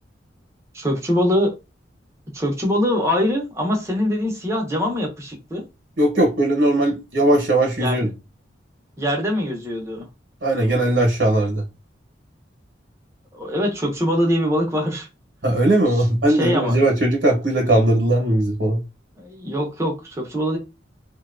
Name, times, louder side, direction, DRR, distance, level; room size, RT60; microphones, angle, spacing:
voice 1, 0.7-1.5 2.3-5.6 7.8-8.1 9.0-10.1 13.3-15.1 16.3-16.8 19.2-20.6, equal, 15° right, 0.6 m, -23 dB
voice 2, 6.0-8.1 10.4-11.6 15.4-18.8, right 1 dB, 65° right, 0.8 m, -19 dB
2.7 x 2.2 x 2.4 m
head